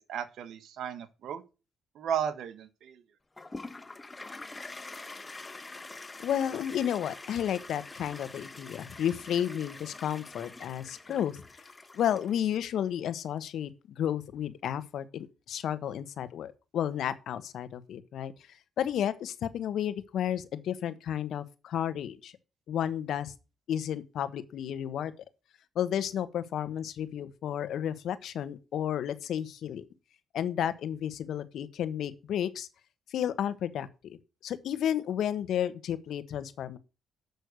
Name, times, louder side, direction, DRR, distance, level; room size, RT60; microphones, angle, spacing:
voice 1, 0.1-1.4 1.9-3.0, right 8 dB, 75° right, 1.5 m, -34 dB
Toilet flush, 3.4-12.6, left 3 dB, 20° left, 1.1 m, -45 dB
voice 2, 6.2-11.4 11.9-18.3 18.8-22.3 22.7-23.3 23.7-25.1 25.7-29.8 30.3-32.7 33.1-34.2 34.4-36.8, left 10 dB, 70° left, 1.2 m, -32 dB
8.0 x 6.5 x 8.2 m
cardioid pair, 90°, 0 cm